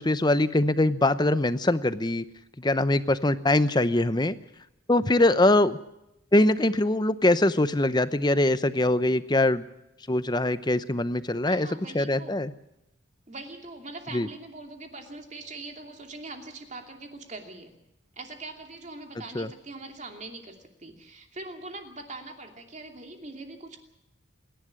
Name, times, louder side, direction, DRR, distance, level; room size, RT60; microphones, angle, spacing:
voice 1, 0.0-2.2 2.6-4.4 4.9-5.8 6.3-9.6 10.1-11.7 11.9-12.5 14.1-14.3 19.3-19.5, left 1 dB, 20° left, 13 dB, 0.7 m, -23 dB
voice 2, 11.4-12.4 13.3-17.8 18.2-23.8, right 2 dB, 35° right, 4 dB, 2.7 m, -42 dB
27.5 x 11.5 x 9.9 m, 0.86 s
head